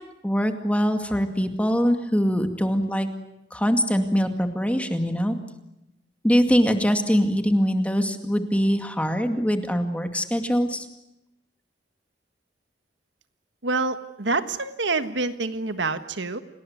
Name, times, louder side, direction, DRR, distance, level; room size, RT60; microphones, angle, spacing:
voice 1, 0.2-3.1 3.5-5.4 6.2-10.9, equal, 10° left, 6 dB, 2.2 m, -23 dB
voice 2, 13.6-16.4, right 3 dB, 85° right, 10 dB, 1.5 m, -27 dB
28.0 x 19.0 x 9.6 m, 0.89 s
head